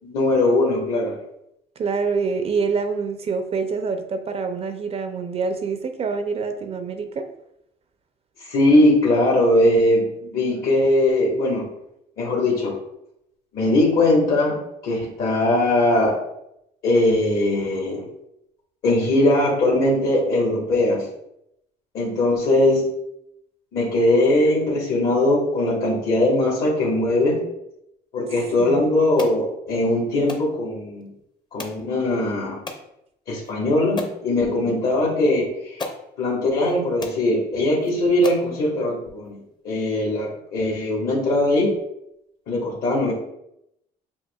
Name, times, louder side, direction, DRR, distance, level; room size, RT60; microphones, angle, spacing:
voice 1, 0.0-1.2 8.4-11.7 12.2-12.8 13.5-14.6 14.8-16.2 16.8-18.0 18.8-21.1 21.9-22.9 23.7-27.4 28.1-31.1 31.5-32.6 33.3-35.8 36.2-39.4 39.6-41.8 42.5-43.1, left 1 dB, 65° left, -6 dB, 1.4 m, -20 dB
voice 2, 1.8-7.3 28.6-28.9 34.4-34.8, right 5 dB, 35° right, 7 dB, 0.4 m, -26 dB
sound 1, 29.2-29.4 30.3-30.5 31.6-31.8 32.7-32.9 33.4-33.5 34.0-34.2 35.3-35.4 35.8-36.0 36.7-36.8 37.0-37.2 37.8-37.9 38.2-38.5, left 3 dB, 25° left, 0.6 m, -33 dB
7.2 x 2.6 x 2.3 m, 0.80 s
cardioid pair, 110°, 17 cm